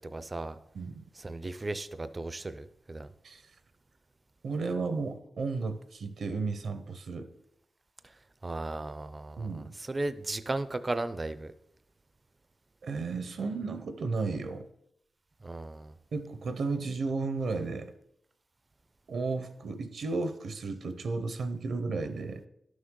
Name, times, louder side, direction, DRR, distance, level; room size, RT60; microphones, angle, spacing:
voice 1, 0.0-0.6 1.2-3.1 8.4-11.5 15.4-15.9, right 2 dB, 25° right, 12 dB, 0.4 m, -36 dB
voice 2, 4.4-7.3 9.4-9.7 12.8-14.7 16.1-17.9 19.1-22.4, right 4 dB, 70° right, 10 dB, 0.7 m, -33 dB
11.5 x 6.3 x 3.7 m, 0.77 s
wide cardioid pair, 160°, 0 cm